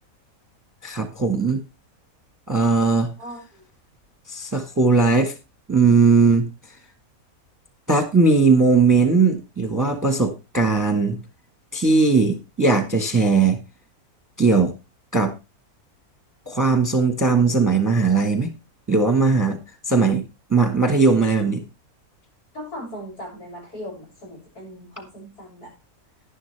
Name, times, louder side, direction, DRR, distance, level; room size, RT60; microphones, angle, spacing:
voice 1, 0.8-1.6 2.5-3.1 4.3-5.3 5.7-6.5 7.9-11.2 11.7-13.6 14.4-14.7 15.1-15.3 16.5-18.5 18.9-19.6 19.9-20.2 20.5-21.6, right 4 dB, 15° right, 7 dB, 1.1 m, -18 dB
voice 2, 3.2-3.7 22.5-25.7, equal, 80° left, -1 dB, 7.3 m, -38 dB
11.0 x 11.0 x 3.3 m, 0.26 s
omnidirectional pair, 1.6 m